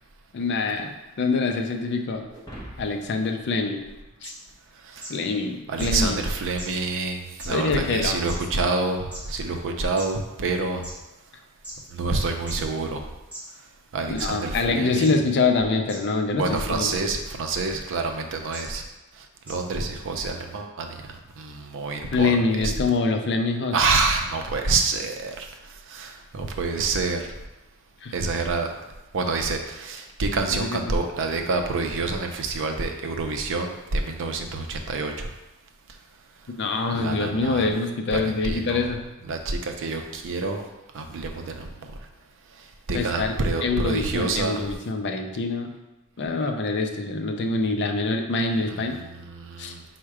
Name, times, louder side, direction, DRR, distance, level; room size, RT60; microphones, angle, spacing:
voice 1, 0.3-2.3 2.8-3.9 4.2-4.3 5.1-6.2 7.5-8.3 14.1-16.9 22.1-23.8 28.0-28.1 30.5-30.9 36.6-39.0 42.9-43.4 43.6-45.7 46.2-49.0 49.6-49.8, left 3 dB, 50° left, 4 dB, 0.4 m, -25 dB
sound 1, 2.3-4.8, equal, 15° left, 0.7 m, -45 dB
sound 2, 4.2-4.3 5.0-5.1 5.8-5.9 6.6-6.7 7.4-7.5 8.3-8.4 9.1-9.2 10.0-10.1 10.8-10.9 11.6-11.7 12.5-12.6 13.3-13.4 14.2-14.3 15.0-15.1 15.9-16.0 17.2-17.4 18.5-18.6 19.5-19.6, right 1 dB, 5° right, 1.3 m, -38 dB
voice 2, 5.7-10.9 11.9-13.0 13.9-15.1 16.4-18.8 19.5-21.0 21.4-22.3 22.6-22.7 23.7-25.5 25.9-27.3 28.1-28.7 29.1-35.3 36.9-37.7 38.1-38.8 39.3-40.6 40.9-41.7 42.9-44.7 48.7-49.8, right 3 dB, 60° right, 4 dB, 0.5 m, -27 dB
4.5 x 2.1 x 4.7 m, 1.0 s
head